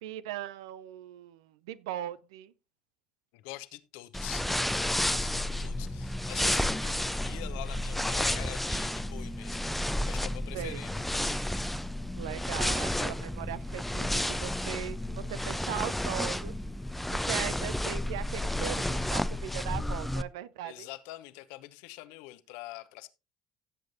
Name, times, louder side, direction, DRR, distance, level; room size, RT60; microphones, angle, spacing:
voice 1, 0.0-2.5 10.5-10.8 12.1-16.5 17.1-20.9, right 12 dB, 75° right, 0.6 m, -39 dB
voice 2, 3.3-9.6 10.0-11.4 20.6-23.1, left 17 dB, 70° left, 0.9 m, -45 dB
sound 1, 4.1-20.2, left 1 dB, 5° left, 0.6 m, -31 dB
sound 2, 10.8-14.3, right 6 dB, 55° right, 5.5 m, -66 dB
16.5 x 7.7 x 2.7 m
hypercardioid pair, 60°, 3 cm